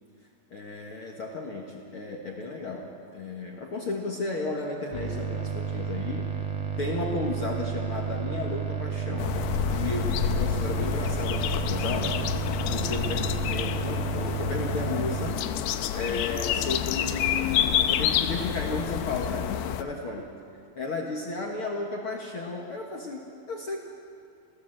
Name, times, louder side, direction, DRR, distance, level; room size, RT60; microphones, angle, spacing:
voice 1, 0.5-6.3 6.8-9.4 9.7-12.2 12.7-15.5 15.9-20.3 20.8-23.8, left 3 dB, 50° left, 0 dB, 1.6 m, -33 dB
sound 1, 4.9-15.3, right 7 dB, 60° right, 3.7 m, -31 dB
sound 2, 9.2-19.8, left 10 dB, 90° left, 2.9 m, -28 dB
28.0 x 16.5 x 7.8 m, 2.5 s
omnidirectional pair, 4.7 m